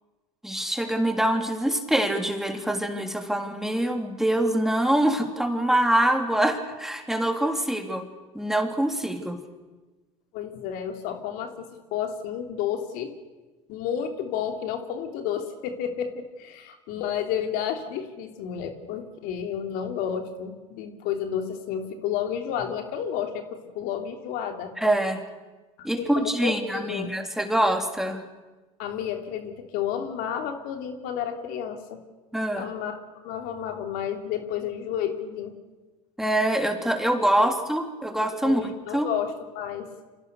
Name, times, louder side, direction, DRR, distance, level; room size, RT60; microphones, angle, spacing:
voice 1, 0.4-8.0 8.3-9.4 24.8-25.2 25.8-28.2 32.3-32.7 36.2-39.1, right 1 dB, ahead, 4 dB, 3.4 m, -25 dB
voice 2, 10.3-13.1 13.7-24.7 25.8-27.1 28.8-32.0 32.6-33.0 33.2-35.5 37.4-37.5 38.4-39.9, left 8 dB, 65° left, 5 dB, 3.1 m, -31 dB
29.5 x 25.0 x 6.8 m, 1.2 s
hypercardioid pair, 90°, 17 cm